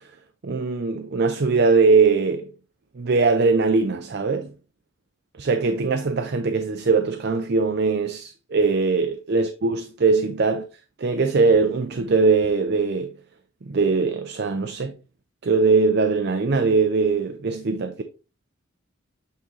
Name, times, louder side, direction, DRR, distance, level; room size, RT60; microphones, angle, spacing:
voice 1, 0.4-2.5 3.0-4.5 5.4-10.6 11.0-13.1 13.6-14.9 15.4-18.0, right 4 dB, 55° right, 0.5 m, -21 dB
8.3 x 3.7 x 3.2 m
head